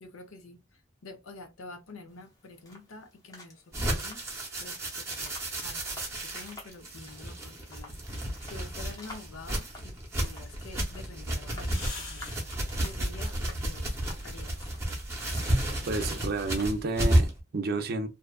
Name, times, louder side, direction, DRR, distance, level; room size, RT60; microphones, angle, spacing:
voice 1, 0.0-4.2 4.6-5.8 6.1-12.4 12.8-14.7, left 3 dB, 90° left, 0.6 m, -48 dB
sound 1, 2.1-17.0, left 2 dB, 20° left, 0.7 m, -53 dB
sound 2, 3.7-17.4, right 1 dB, 15° right, 0.8 m, -32 dB
sound 3, 10.7-16.9, left 1 dB, 70° left, 1.6 m, -44 dB
voice 2, 15.9-18.1, right 3 dB, 50° right, 0.5 m, -30 dB
2.6 x 2.3 x 2.3 m
head